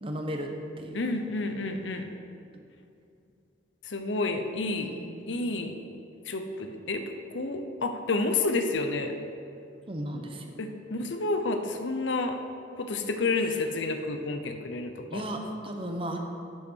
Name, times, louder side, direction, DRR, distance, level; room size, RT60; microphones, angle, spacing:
voice 1, 0.0-0.5 0.8-1.0 4.7-5.3 9.9-10.6 15.1-16.2, right 1 dB, 30° right, 3 dB, 0.8 m, -35 dB
voice 2, 0.9-2.0 3.8-4.9 5.3-5.8 6.3-9.1 10.6-12.4 12.7-15.2, left 3 dB, 80° left, 6 dB, 0.8 m, -30 dB
10.5 x 8.2 x 4.5 m, 2.5 s
head